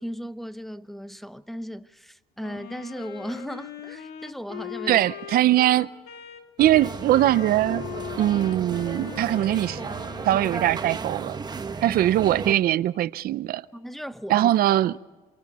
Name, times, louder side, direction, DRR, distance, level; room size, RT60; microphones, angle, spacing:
voice 1, 0.0-5.0 11.7-12.0 13.7-14.5, equal, ahead, 0.7 m, -37 dB
Wind instrument woodwind instrument, 2.4-10.9, left 10 dB, 75° left, 1.9 m, -40 dB
voice 2, 4.9-5.9 6.6-7.9 8.2-9.8 10.3-11.4 11.8-13.6 14.3-14.9, right 13 dB, 60° right, 0.6 m, -21 dB
sound 1, 6.6-12.5, right 5 dB, 25° right, 1.1 m, -34 dB
27.5 x 24.5 x 4.2 m
cardioid pair, 110°, 17 cm